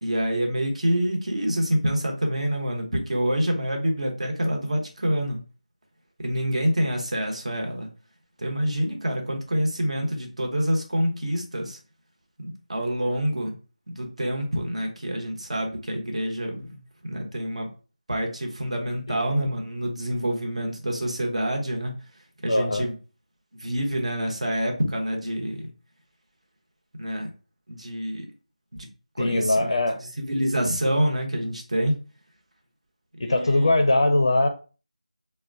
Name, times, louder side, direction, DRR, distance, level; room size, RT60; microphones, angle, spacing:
voice 1, 0.0-5.4 6.2-7.9 8.4-11.8 12.4-13.6 13.9-17.7 18.1-21.9 22.4-22.9 23.6-25.7 27.0-27.3 27.7-28.3 29.1-32.0 33.2-33.7, equal, 55° right, 2 dB, 1.0 m, -27 dB
voice 2, 22.5-22.8 29.2-30.0 33.2-34.5, left 2 dB, 40° left, 5 dB, 0.4 m, -21 dB
4.2 x 2.1 x 2.5 m, 0.35 s
figure-of-eight pair, 175°, 4 cm